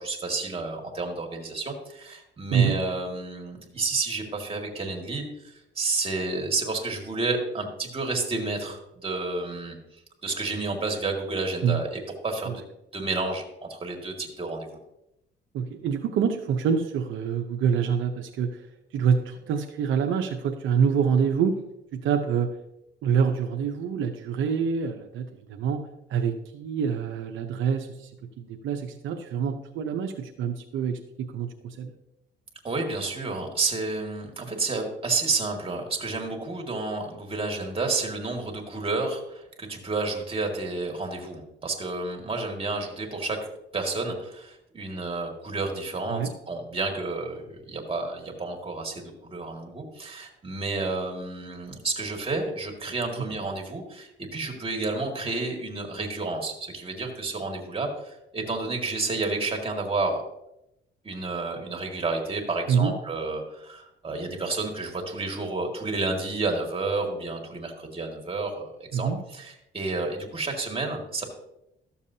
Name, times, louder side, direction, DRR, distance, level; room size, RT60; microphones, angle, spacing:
voice 1, 0.0-9.8 10.2-12.6 12.9-14.8 32.6-43.4 43.7-60.2 61.0-71.2, right 3 dB, 30° right, 1 dB, 2.1 m, -30 dB
voice 2, 15.5-18.6 18.9-21.5 21.9-22.5 23.0-25.8 26.1-28.1 28.4-31.9 46.1-46.3 62.7-62.9 68.9-69.2, right 7 dB, 80° right, 4 dB, 0.8 m, -26 dB
13.0 x 7.1 x 2.8 m, 0.85 s
cardioid pair, 90°, 20 cm